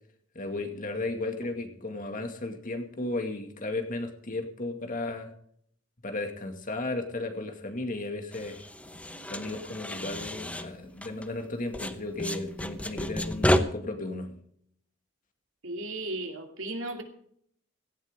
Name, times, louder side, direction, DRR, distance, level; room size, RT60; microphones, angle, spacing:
voice 1, 0.3-5.3 6.0-8.6 9.3-14.4, left 2 dB, 40° left, 5 dB, 2.3 m, -34 dB
sound 1, 8.3-11.5 11.7-13.6, equal, 5° left, 0.9 m, -31 dB
voice 2, 15.6-17.0, right 2 dB, 85° right, 4 dB, 2.8 m, -35 dB
17.0 x 13.0 x 3.8 m, 0.66 s
head